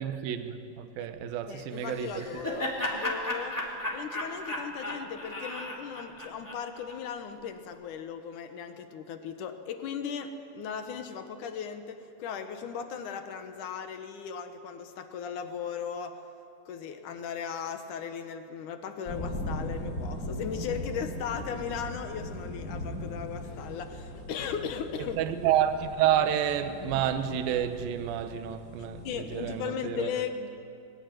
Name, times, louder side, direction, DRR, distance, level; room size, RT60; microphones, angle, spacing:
voice 1, 0.0-2.3 25.2-30.1, right 10 dB, 70° right, 2.7 m, -29 dB
voice 2, 1.5-3.6 3.9-16.2 16.7-25.2 29.0-30.5, left 7 dB, 65° left, 2.3 m, -37 dB
Laughter, 1.8-7.0, left 1 dB, 5° left, 2.4 m, -35 dB
sound 1, 19.1-29.7, left 1 dB, 25° left, 4.0 m, -39 dB
21.5 x 19.5 x 9.3 m
omnidirectional pair, 4.6 m